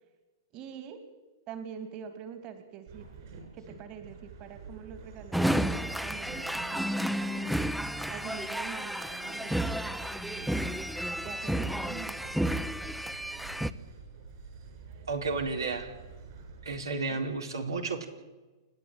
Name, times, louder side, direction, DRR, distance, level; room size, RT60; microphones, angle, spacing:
voice 1, 0.5-1.0 1.5-3.1 3.5-7.5 8.1-10.8 11.2-12.3 17.1-17.2, right 8 dB, 40° right, 8 dB, 2.8 m, -45 dB
Train, 2.9-16.7, right 4 dB, 60° right, 7.4 m, -49 dB
sound 1, 5.3-13.7, equal, ahead, 0.8 m, -31 dB
voice 2, 15.1-15.9 16.6-18.1, right 3 dB, 85° right, 3 dB, 3.9 m, -32 dB
29.0 x 10.5 x 9.0 m, 1.2 s
hypercardioid pair, 110°, 2 cm